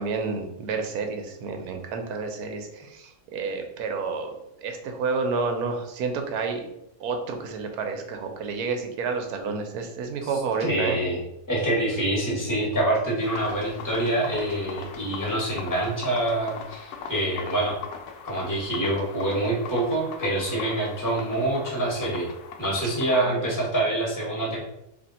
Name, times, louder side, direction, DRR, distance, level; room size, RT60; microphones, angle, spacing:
voice 1, 0.0-6.7 7.0-11.0 23.1-23.5, right 4 dB, 85° right, 4 dB, 1.2 m, -30 dB
voice 2, 10.6-11.2 11.5-17.8 18.2-22.3 22.6-24.6, right 1 dB, 15° left, -3 dB, 1.2 m, -26 dB
sound 1, 13.2-23.2, left 6 dB, 85° left, 1.1 m, -40 dB
3.5 x 2.7 x 4.0 m, 0.84 s
omnidirectional pair, 1.6 m